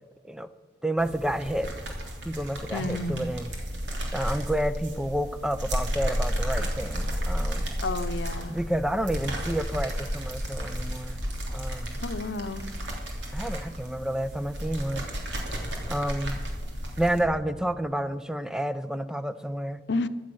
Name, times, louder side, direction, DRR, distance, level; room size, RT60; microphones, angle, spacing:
voice 1, 0.8-1.7 2.2-3.5 4.1-7.8 8.5-12.0 13.3-15.1 15.9-16.4 17.0-19.8, right 1 dB, 5° right, 13 dB, 0.5 m, -30 dB
sound 1, 1.0-17.2, equal, 85° right, 3.1 m, -32 dB
voice 2, 2.7-3.3 7.8-8.6 12.0-12.6 19.9-20.1, left 2 dB, 80° left, 12 dB, 0.7 m, -31 dB
16.0 x 12.0 x 6.3 m, 1.4 s
head